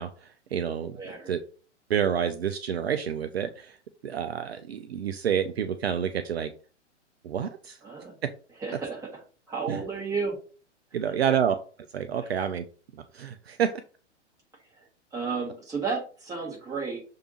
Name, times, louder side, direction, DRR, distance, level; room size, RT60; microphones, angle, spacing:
voice 1, 0.0-1.0 1.3-1.4 1.9-3.8 4.0-6.5 7.2-7.8 9.7-9.8 10.9-11.6 11.9-12.6 12.9-13.7, right 8 dB, 60° right, 9 dB, 0.5 m, -28 dB
voice 2, 0.9-1.3 7.8-8.2 8.6-9.2 9.5-10.4 12.2-12.3 14.8-14.9 15.1-17.0, right 5 dB, 10° right, -3 dB, 1.5 m, -32 dB
6.5 x 2.7 x 2.9 m, 0.39 s
figure-of-eight pair, 110°, 36 cm